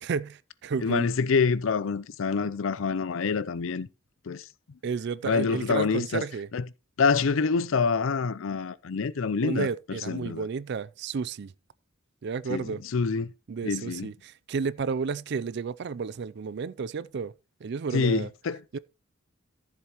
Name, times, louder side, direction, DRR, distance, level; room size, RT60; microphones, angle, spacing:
voice 1, 0.0-1.1 4.8-6.5 9.4-11.5 12.2-12.8 13.5-17.3 17.6-18.3 18.7-18.8, right 5 dB, 55° right, 0.4 m, -32 dB
voice 2, 0.8-3.9 4.3-4.5 5.2-6.2 6.5-6.6 7.0-10.4 12.5-13.3 13.6-14.1 17.9-18.6, left 5 dB, 70° left, 0.5 m, -26 dB
13.5 x 7.3 x 3.0 m
head